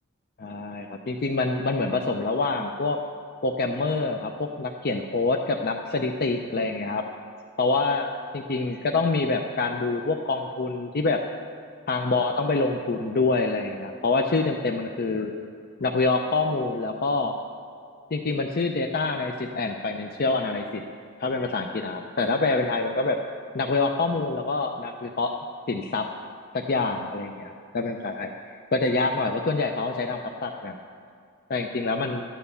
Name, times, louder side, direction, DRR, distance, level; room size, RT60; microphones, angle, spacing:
voice 1, 0.4-3.0 3.4-7.0 7.6-11.2 11.9-15.3 15.8-17.3 18.1-20.8 21.2-23.2 23.5-25.3 25.7-26.0 26.5-30.8 31.5-32.2, left 3 dB, 45° left, 3 dB, 0.6 m, -26 dB
12.5 x 9.2 x 6.9 m, 2.3 s
head